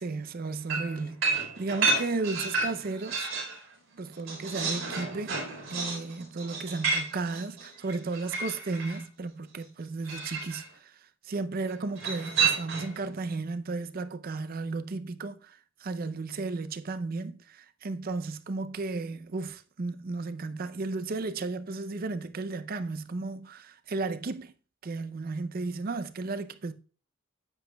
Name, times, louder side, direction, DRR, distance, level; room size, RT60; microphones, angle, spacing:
voice 1, 0.0-3.3 4.0-5.4 5.7-10.9 11.2-24.5 24.8-26.7, right 3 dB, 45° right, 0.5 m, -34 dB
sound 1, 0.7-3.6 3.9-9.0 10.0-10.6 12.0-13.0, right 4 dB, 75° right, 3.6 m, -31 dB
9.8 x 8.0 x 2.2 m
head